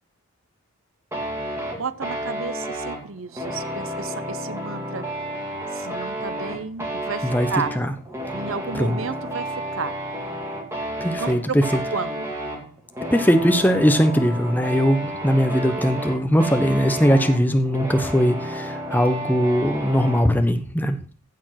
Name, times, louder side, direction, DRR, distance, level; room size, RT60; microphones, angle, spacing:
sound 1, 1.1-20.3, right 1 dB, 10° right, 2.4 m, -31 dB
voice 1, 1.8-5.1 5.7-7.7 8.3-10.0 11.2-11.6 11.9-12.2, right 5 dB, 65° right, 14 dB, 0.8 m, -32 dB
voice 2, 11.0-11.8 13.1-21.0, equal, 10° left, 7 dB, 1.0 m, -20 dB
15.5 x 5.1 x 5.9 m, 0.41 s
head